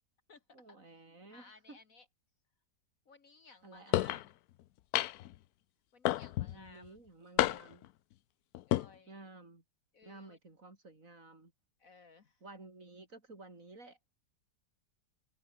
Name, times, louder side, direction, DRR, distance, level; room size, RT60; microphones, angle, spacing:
voice 1, 0.5-1.8 3.6-4.2 6.5-7.9 9.1-9.6 10.0-11.5 12.4-14.0, right 2 dB, 45° right, 4.5 m, -53 dB
voice 2, 1.3-2.1 3.1-4.4 5.9-7.0 8.7-9.3 9.9-10.4 11.8-12.4, left 4 dB, 50° left, 1.8 m, -59 dB
sound 1, 3.9-4.2 4.9-5.3 6.0-6.5 7.4-7.9 8.5-8.9, left 15 dB, 70° left, 1.0 m, -30 dB
omnidirectional pair, 1.9 m